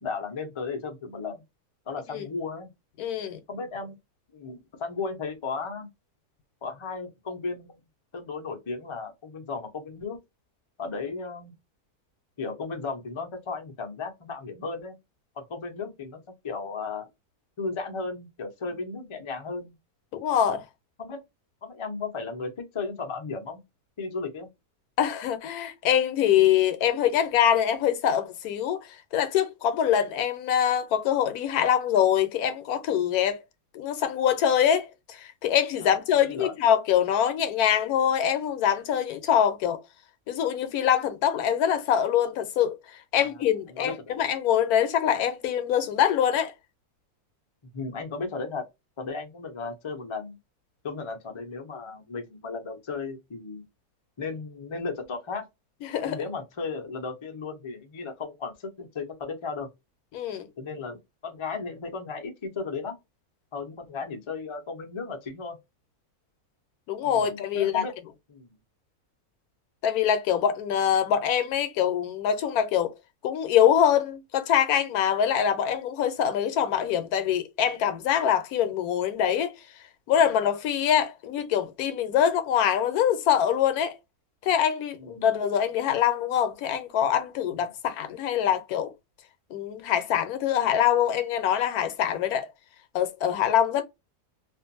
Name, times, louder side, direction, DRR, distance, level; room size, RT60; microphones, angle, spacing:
voice 1, 0.0-1.4 1.9-2.7 3.5-4.0 4.3-5.9 6.6-7.8 8.1-10.2 10.8-11.5 12.4-14.9 15.4-16.2 16.4-17.1 17.6-19.7 21.0-21.2 21.6-23.6 24.0-24.5 35.8-35.9 36.2-36.5 43.1-44.2 47.7-48.6 49.0-50.4 50.8-53.6 54.2-55.4 56.0-59.7 60.6-63.0 63.5-65.6 67.0-67.9 68.3-68.6 85.0-85.3 87.5-87.6, left 4 dB, 40° left, 0.4 m, -35 dB
voice 2, 3.0-3.4 20.1-20.6 25.0-33.4 33.7-39.8 40.3-46.5 55.8-56.2 60.1-60.5 66.9-67.8 69.8-73.0 73.2-79.5 80.1-84.0 84.4-88.9 89.5-92.5 92.9-93.8, left 9 dB, 75° left, 1.0 m, -24 dB
2.5 x 2.4 x 2.6 m
omnidirectional pair, 1.6 m